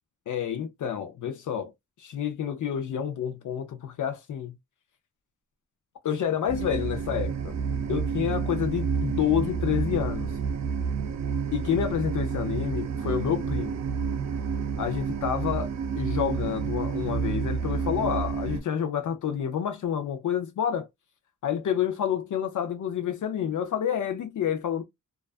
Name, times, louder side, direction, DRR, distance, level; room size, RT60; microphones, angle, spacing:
voice 1, 0.3-1.7 2.0-4.5 6.0-7.5 7.9-10.3 11.5-13.8 14.8-20.9 21.4-24.8, left 9 dB, 70° left, 0.5 m, -29 dB
sound 1, 6.5-18.6, right 6 dB, 55° right, 0.5 m, -29 dB
2.3 x 2.3 x 2.3 m
wide cardioid pair, 155°, 32 cm